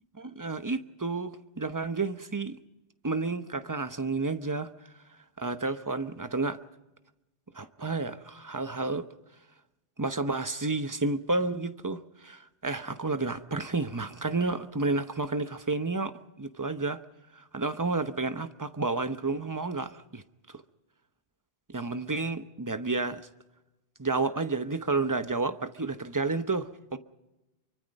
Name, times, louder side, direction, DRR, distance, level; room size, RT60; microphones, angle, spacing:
voice 1, 0.2-2.6 3.0-4.7 5.4-6.6 7.5-9.1 10.0-16.1 16.4-17.0 17.3-20.2 21.7-23.3 24.0-27.0, right 3 dB, 20° right, 0.9 m, -31 dB
25.0 x 24.0 x 5.3 m
omnidirectional pair, 1.1 m